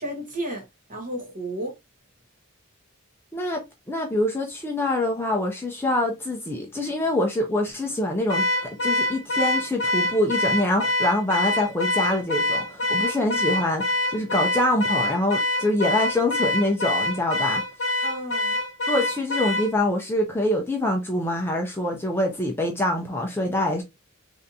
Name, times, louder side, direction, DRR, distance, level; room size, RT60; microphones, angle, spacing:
voice 1, 0.0-1.7 18.0-18.6, right 1 dB, 35° right, 1.2 m, -33 dB
voice 2, 3.3-8.5 8.8-13.9 14.1-17.6 18.9-23.8, left 1 dB, 10° left, 0.5 m, -25 dB
Car / Alarm, 8.3-19.7, left 1 dB, 70° left, 1.0 m, -25 dB
3.4 x 2.6 x 2.6 m
head